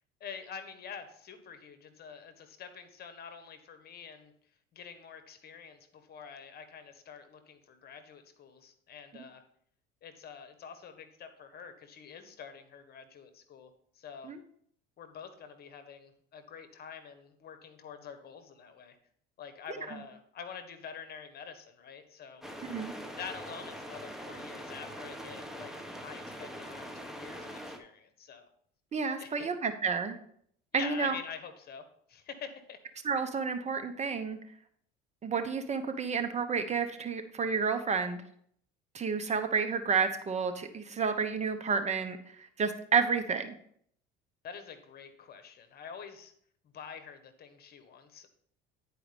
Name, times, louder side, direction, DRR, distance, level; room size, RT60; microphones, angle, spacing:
voice 1, 0.2-4.3 4.7-9.4 10.0-13.7 13.9-14.3 15.0-19.0 19.4-22.4 23.2-28.5 29.2-29.5 30.7-32.8 44.4-46.3 46.6-48.3, left 7 dB, 50° left, 9 dB, 1.4 m, -47 dB
sound 1, 22.4-27.8, equal, ahead, 1.3 m, -43 dB
voice 2, 28.9-30.2 30.7-31.2 33.0-34.4 35.2-38.2 38.9-43.5, right 5 dB, 35° right, 8 dB, 1.0 m, -30 dB
10.0 x 4.8 x 5.2 m, 0.64 s
supercardioid pair, 90°, 21 cm